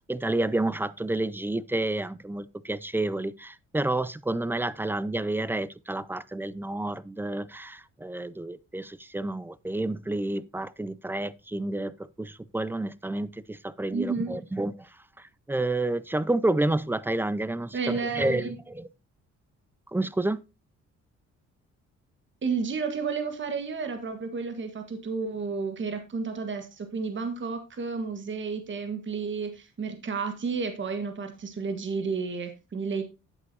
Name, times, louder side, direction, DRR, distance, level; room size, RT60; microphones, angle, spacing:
voice 1, 0.1-14.9 15.5-18.5 18.7-18.9 19.9-20.4, right 2 dB, 5° right, 0.4 m, -29 dB
voice 2, 13.9-14.4 17.7-18.5 22.4-33.0, right 5 dB, 40° right, 1.6 m, -31 dB
9.9 x 8.3 x 2.8 m
cardioid pair, 90°, 30 cm